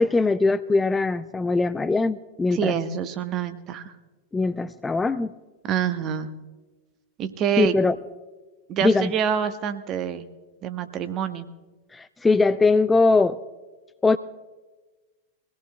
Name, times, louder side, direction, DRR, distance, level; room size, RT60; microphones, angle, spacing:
voice 1, 0.0-2.8 4.3-5.3 7.6-8.0 8.8-9.1 11.9-13.4 14.0-14.2, left 3 dB, 10° left, 12 dB, 0.3 m, -21 dB
voice 2, 2.5-3.8 5.6-6.3 7.2-7.7 8.7-10.3 10.6-11.5, right 8 dB, 35° right, 10 dB, 0.9 m, -26 dB
23.0 x 17.0 x 2.2 m, 1.2 s
figure-of-eight pair, 90°, 0 cm